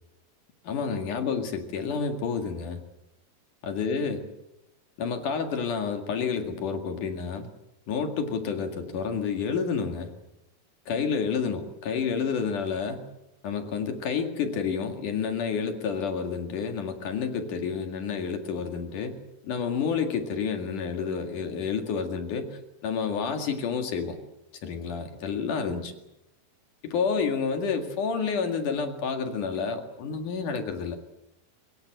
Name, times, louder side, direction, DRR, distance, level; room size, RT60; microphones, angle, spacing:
voice 1, 0.6-2.8 3.6-4.2 5.0-7.5 7.9-10.1 10.9-13.1 13.4-19.2 19.4-24.2 24.6-25.9 26.8-31.0, left 6 dB, 60° left, 6 dB, 3.4 m, -29 dB
23.5 x 21.5 x 7.9 m, 0.87 s
omnidirectional pair, 4.3 m